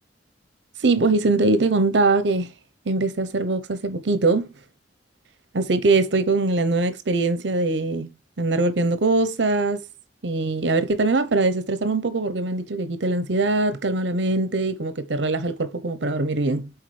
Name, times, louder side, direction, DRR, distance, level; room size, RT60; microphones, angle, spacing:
voice 1, 0.8-2.5 2.9-4.5 5.5-8.1 8.4-9.8 10.2-16.7, right 3 dB, 70° right, 0.8 m, -22 dB
8.2 x 3.9 x 3.2 m
head